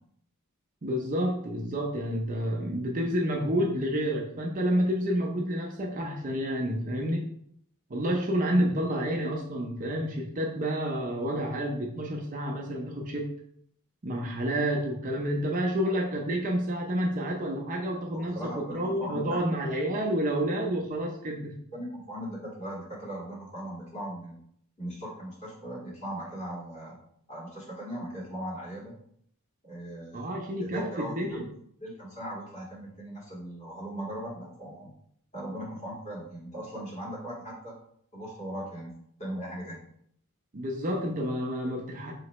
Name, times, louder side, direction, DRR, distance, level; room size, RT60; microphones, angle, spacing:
voice 1, 0.8-7.3 7.9-13.3 14.0-21.6 30.1-31.5 40.5-42.1, equal, 35° right, 1 dB, 0.5 m, -29 dB
voice 2, 18.1-19.5 21.7-24.4 24.8-27.0 27.3-29.0 29.6-30.2 30.6-31.4 31.8-34.9 35.3-37.8 38.1-38.9 39.2-39.8, equal, 30° left, -6 dB, 1.7 m, -39 dB
4.9 x 3.0 x 3.0 m, 0.67 s
head